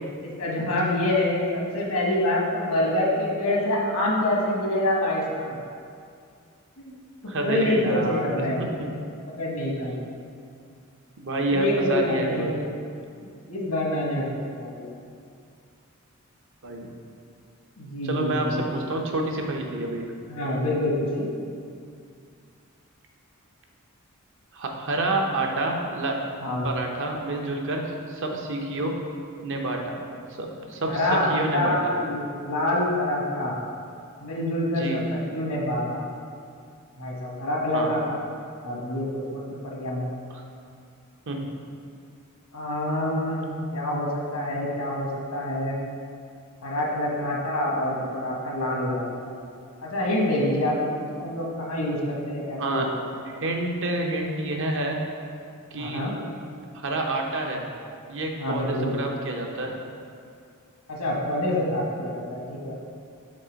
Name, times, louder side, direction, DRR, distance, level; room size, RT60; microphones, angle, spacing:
voice 1, 0.4-5.6 6.8-7.0 7.4-8.7 9.3-10.0 11.5-12.5 13.5-14.9 17.8-18.6 20.3-21.3 26.4-26.8 30.9-33.6 34.2-36.0 37.0-38.2 38.6-40.1 42.5-45.8 46.6-49.0 49.8-53.0 55.7-56.1 58.4-59.0 60.9-62.7, left 1 dB, 85° left, -3 dB, 1.3 m, -26 dB
voice 2, 7.3-8.9 11.2-12.6 16.6-16.9 18.1-20.0 24.5-26.2 26.6-28.9 29.4-30.0 30.4-31.9 34.7-35.0 37.7-37.9 40.3-40.4 41.3-41.4 52.6-52.9 53.2-55.0 55.7-56.0 56.7-57.6 58.1-59.7, right 2 dB, 60° right, 1 dB, 0.7 m, -28 dB
5.2 x 3.8 x 5.1 m, 2.4 s
head